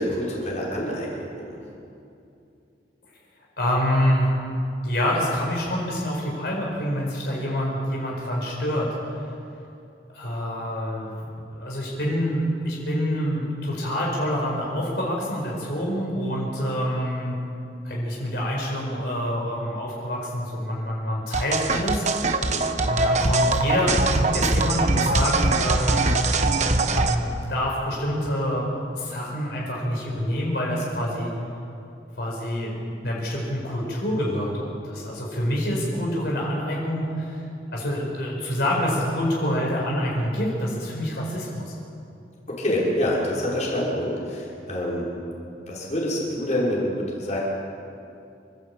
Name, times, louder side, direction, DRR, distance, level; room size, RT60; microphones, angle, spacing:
voice 1, 0.0-1.6 22.5-22.8 42.5-45.1 45.7-47.4, left 1 dB, 40° left, -5 dB, 5.8 m, -27 dB
voice 2, 3.6-4.3 4.8-8.9 10.1-17.4 17.8-22.0 22.4-22.5 22.8-26.2 26.8-28.7 29.0-31.3 32.2-37.4 37.7-41.8, equal, 65° left, -3 dB, 5.3 m, -26 dB
sound 1, 21.3-27.1, right 3 dB, 40° right, 1.2 m, -22 dB
28.0 x 14.0 x 8.6 m, 2.6 s
head